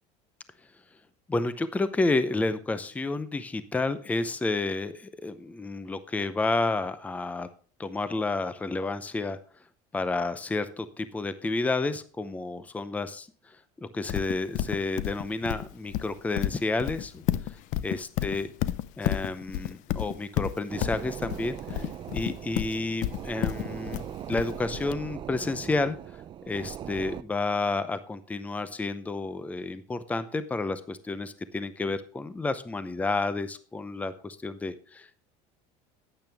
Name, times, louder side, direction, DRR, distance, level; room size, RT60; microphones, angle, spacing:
voice 1, 1.3-7.5 7.8-9.4 9.9-13.6 13.8-17.6 17.8-18.5 19.0-26.0 26.5-35.1, left 3 dB, 10° left, 13 dB, 0.6 m, -30 dB
Livestock farm animals working animals, 14.1-24.9, left 13 dB, 60° left, 0.6 m, -31 dB
sound 1, 20.7-27.2, right 10 dB, 35° right, 0.4 m, -40 dB
12.0 x 8.9 x 3.4 m, 0.41 s
cardioid pair, 130°, 15 cm